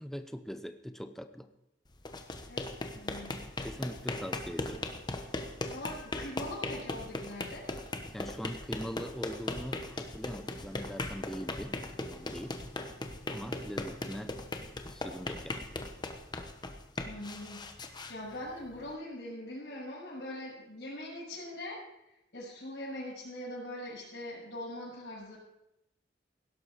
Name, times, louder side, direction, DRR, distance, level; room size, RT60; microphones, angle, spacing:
voice 1, 0.0-1.5 3.6-4.9 8.1-12.6 13.3-14.4 14.7-15.7, equal, ahead, 8 dB, 0.7 m, -42 dB
sound 1, 1.9-18.9, left 2 dB, 25° left, 1.0 m, -39 dB
voice 2, 2.9-3.5 5.6-7.7 17.0-17.6 18.1-21.8 22.3-25.4, left 1 dB, 60° left, -10 dB, 6.4 m, -42 dB
16.5 x 12.0 x 4.8 m, 0.89 s
head